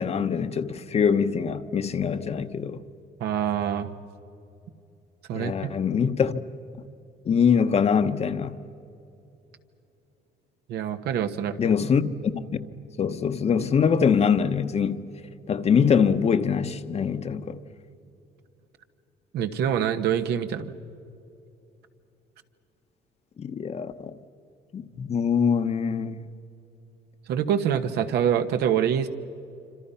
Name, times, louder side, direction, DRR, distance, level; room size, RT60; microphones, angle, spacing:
voice 1, 0.0-2.8 5.3-6.4 7.3-8.6 11.6-12.6 13.0-15.0 15.5-17.6 23.4-24.1 24.7-26.2, left 6 dB, 40° left, 1.1 m, -23 dB
voice 2, 3.2-3.9 5.3-5.7 10.7-11.6 19.3-20.7 27.3-29.1, right 9 dB, 75° right, 1.3 m, -25 dB
27.0 x 26.0 x 5.7 m
cardioid pair, 110°, 17 cm